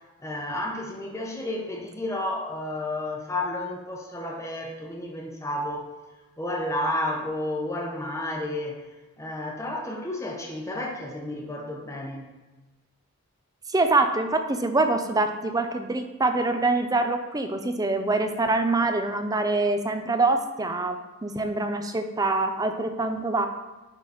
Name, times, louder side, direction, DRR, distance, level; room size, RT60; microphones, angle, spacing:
voice 1, 0.2-5.9 6.4-8.8 9.2-12.3, left 1 dB, 15° left, -1 dB, 1.0 m, -31 dB
voice 2, 13.7-23.5, right 2 dB, 15° right, 7 dB, 0.5 m, -25 dB
10.5 x 4.0 x 4.2 m, 1.2 s
head